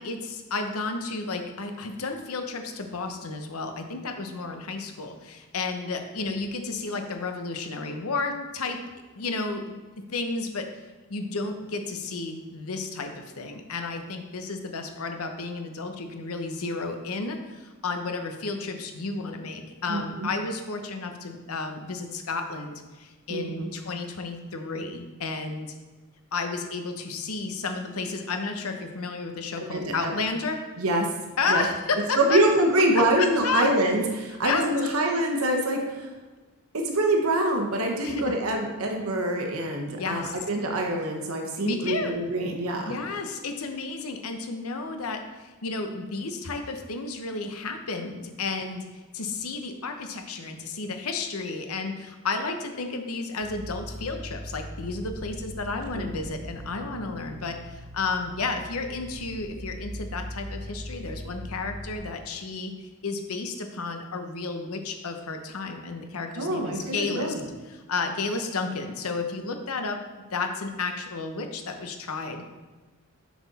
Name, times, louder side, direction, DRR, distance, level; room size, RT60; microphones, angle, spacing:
voice 1, 0.0-8.8 9.1-9.7 10.1-10.7 11.1-25.7 26.3-30.6 31.4-32.4 33.0-33.7 34.4-34.7 38.0-38.3 40.0-40.3 41.6-42.1 42.9-62.7 63.0-67.3 67.7-70.0 70.3-72.5, left 3 dB, 90° left, 5 dB, 0.9 m, -32 dB
voice 2, 19.9-20.3 23.3-23.7 29.6-30.1 30.8-31.1 31.5-31.6 32.2-36.1 36.7-43.0 55.9-56.1 66.3-67.4, right 1 dB, 80° right, 2 dB, 1.0 m, -25 dB
sound 1, 53.4-62.0, equal, 30° right, 1.2 m, -40 dB
6.1 x 6.0 x 4.1 m, 1.3 s
head